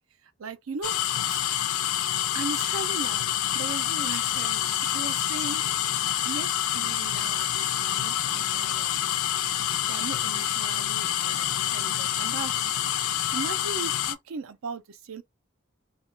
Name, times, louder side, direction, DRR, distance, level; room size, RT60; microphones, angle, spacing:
voice 1, 0.2-1.0 1.3-1.4 2.3-3.3 3.5-5.6 6.3-9.2 9.8-15.2, right 4 dB, 75° right, 0.4 m, -38 dB
sound 1, 0.8-14.2, left 12 dB, 80° left, 0.3 m, -27 dB
2.3 x 2.2 x 3.0 m
head